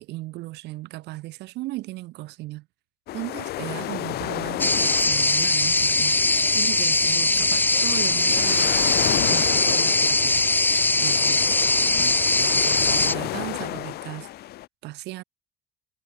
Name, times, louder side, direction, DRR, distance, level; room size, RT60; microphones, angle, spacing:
voice 1, 0.0-2.7 3.1-6.1 6.5-8.8 9.2-10.4 11.0-11.4 12.0-14.3 14.8-15.2, right 19 dB, 85° right, 3.4 m, -36 dB
sound 1, 3.1-14.7, left 15 dB, 70° left, 0.9 m, -32 dB
sound 2, 4.6-13.1, left 2 dB, 10° left, 0.6 m, -21 dB
cardioid pair, 110°, 17 cm